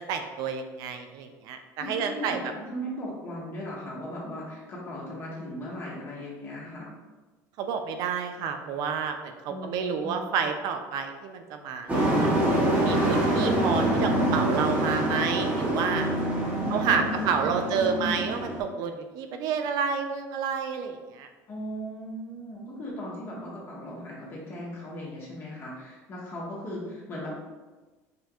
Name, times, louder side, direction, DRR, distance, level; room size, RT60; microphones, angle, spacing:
voice 1, 0.0-2.4 7.6-12.4 12.8-16.1 16.7-21.3, right 6 dB, 65° right, 6 dB, 0.4 m, -30 dB
voice 2, 1.8-6.9 9.5-10.3 16.5-18.2 21.5-27.4, equal, 35° left, -5 dB, 1.4 m, -37 dB
Truck, 11.9-18.6, right 1 dB, 25° right, 1.3 m, -25 dB
5.6 x 2.6 x 2.3 m, 1.2 s
cardioid pair, 125°, 7 cm